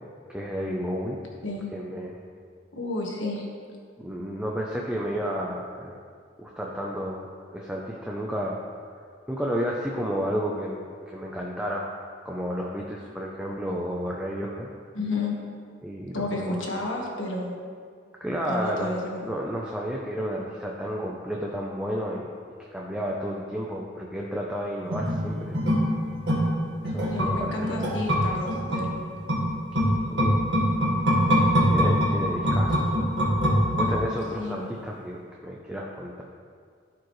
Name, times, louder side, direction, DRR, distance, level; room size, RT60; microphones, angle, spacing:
voice 1, 0.3-1.2 1.7-2.2 4.0-6.0 6.4-8.6 8.9-9.0 9.3-11.9 12.2-14.7 15.8-16.6 18.2-18.9 19.3-22.3 22.6-25.6 26.8-27.8 30.1-30.4 31.3-31.4 31.7-32.8 33.8-36.2, equal, 5° right, -2 dB, 0.5 m, -31 dB
voice 2, 2.7-3.5 14.9-15.4 16.1-17.6 18.5-19.3 27.1-28.9 34.4-34.7, left 2 dB, 85° left, -1 dB, 1.4 m, -31 dB
sound 1, 24.9-34.4 34.7-34.8, equal, 70° right, 1.6 m, -24 dB
14.0 x 4.9 x 3.2 m, 2.1 s
head